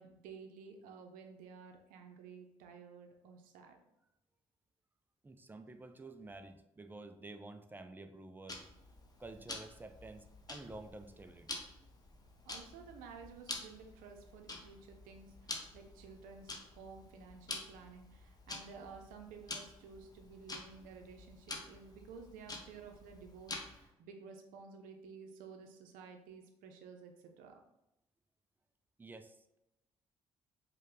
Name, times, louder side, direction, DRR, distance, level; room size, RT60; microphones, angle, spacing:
voice 1, 0.0-3.8 12.4-27.6, right 5 dB, 65° right, 4 dB, 0.7 m, -53 dB
voice 2, 5.2-8.7 9.2-11.7 29.0-29.6, right 2 dB, 15° right, 8 dB, 0.5 m, -51 dB
Tick-tock, 8.5-23.9, left 2 dB, 25° left, 0.9 m, -48 dB
5.2 x 2.3 x 3.7 m, 0.91 s
figure-of-eight pair, 45°, 15 cm